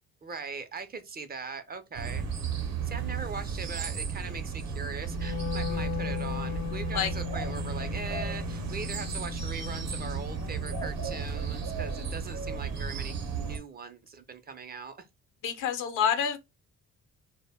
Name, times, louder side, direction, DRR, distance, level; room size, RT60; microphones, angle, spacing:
voice 1, 0.2-2.3 2.6-15.0, right 5 dB, 30° right, 0.5 m, -40 dB
sound 1, 1.9-13.6, right 5 dB, 60° right, 0.8 m, -34 dB
Wind instrument woodwind instrument, 5.0-11.3, left 11 dB, 35° left, 0.4 m, -38 dB
voice 2, 15.4-16.4, left 7 dB, 85° left, 0.7 m, -27 dB
2.1 x 2.1 x 3.4 m
cardioid pair, 90°, 30 cm